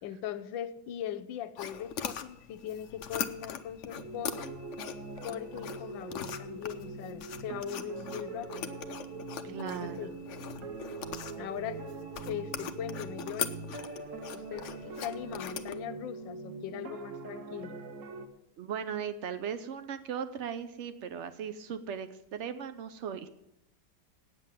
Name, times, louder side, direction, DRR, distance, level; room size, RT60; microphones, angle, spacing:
voice 1, 0.0-4.6 5.2-8.7 9.4-10.2 11.4-11.8 12.2-13.6 14.3-17.8, left 10 dB, 80° left, 13 dB, 1.4 m, -40 dB
sound 1, 1.6-15.7, left 8 dB, 60° left, 0.8 m, -41 dB
sound 2, 3.9-18.3, right 3 dB, 55° right, 1.1 m, -42 dB
voice 2, 9.4-10.1 18.6-23.3, right 8 dB, 85° right, 10 dB, 0.6 m, -38 dB
8.9 x 7.6 x 9.0 m, 0.84 s
omnidirectional pair, 2.0 m